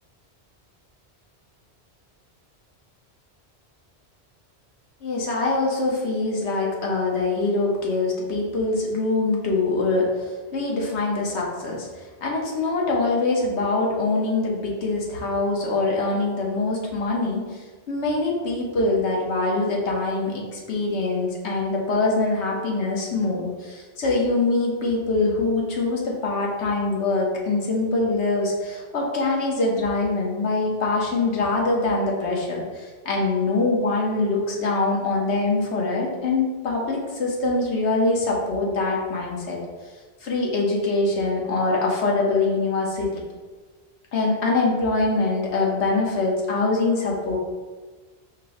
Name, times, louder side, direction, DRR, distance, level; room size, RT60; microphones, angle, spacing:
voice 1, 5.0-39.6 40.2-43.2 44.1-47.4, left 3 dB, 85° left, -2 dB, 1.3 m, -24 dB
5.2 x 2.1 x 4.8 m, 1.3 s
omnidirectional pair, 1.1 m